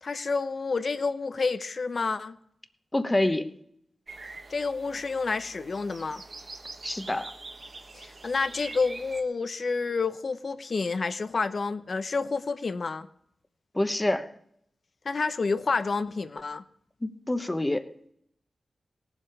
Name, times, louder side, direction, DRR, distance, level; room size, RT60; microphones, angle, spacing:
voice 1, 0.0-2.4 4.5-6.2 7.9-13.1 15.0-16.6, left 4 dB, 60° left, 0.7 m, -29 dB
voice 2, 2.9-3.5 6.8-7.3 13.7-14.3 17.0-17.9, left 1 dB, 20° left, 1.0 m, -27 dB
sound 1, 4.1-9.2, right 3 dB, 55° right, 1.4 m, -44 dB
18.0 x 7.4 x 4.8 m
cardioid pair, 70°, 0 cm